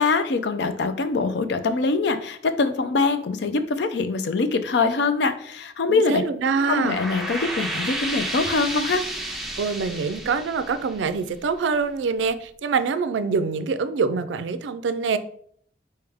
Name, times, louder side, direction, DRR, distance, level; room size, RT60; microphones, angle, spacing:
voice 1, 0.0-6.2 6.7-9.1, left 4 dB, 75° left, 10 dB, 0.4 m, -23 dB
voice 2, 5.9-7.0 9.6-15.2, right 5 dB, 85° right, 12 dB, 0.3 m, -25 dB
sound 1, 6.4-11.7, right 1 dB, ahead, 0.5 m, -32 dB
4.3 x 3.4 x 3.4 m, 0.63 s
head